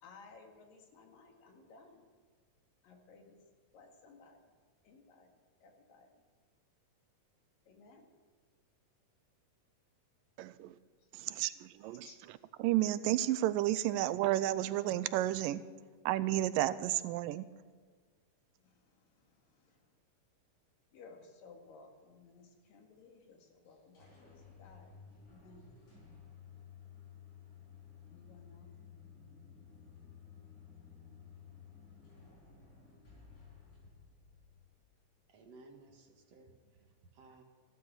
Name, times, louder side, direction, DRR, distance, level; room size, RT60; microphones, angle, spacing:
voice 1, 0.0-2.1 2.8-3.4 3.7-4.4 4.8-5.3 5.6-6.2 7.7-8.1 11.9-12.2 18.6-19.9 20.9-24.9 25.3-25.7 28.1-28.7, left 4 dB, 80° left, 2 dB, 3.6 m, -58 dB
voice 2, 10.4-10.8 11.1-12.1 12.6-15.6 16.1-17.5, right 14 dB, 90° right, 14 dB, 2.3 m, -32 dB
sound 1, 23.7-35.3, left 7 dB, 45° left, 5.9 m, -56 dB
voice 3, 35.3-36.9 37.1-37.4, right 3 dB, 55° right, 3 dB, 2.3 m, -58 dB
14.5 x 12.5 x 6.2 m, 1.5 s
omnidirectional pair, 3.9 m